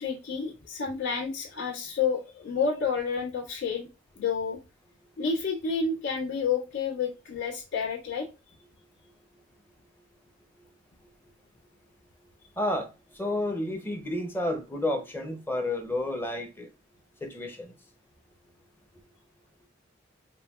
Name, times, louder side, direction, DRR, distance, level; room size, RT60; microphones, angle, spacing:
voice 1, 0.0-3.9 4.1-4.6 5.2-8.3, left 5 dB, 65° left, 1.7 m, -30 dB
voice 2, 12.6-16.7 17.2-17.8, left 1 dB, 10° left, 0.6 m, -31 dB
5.3 x 2.2 x 2.3 m
head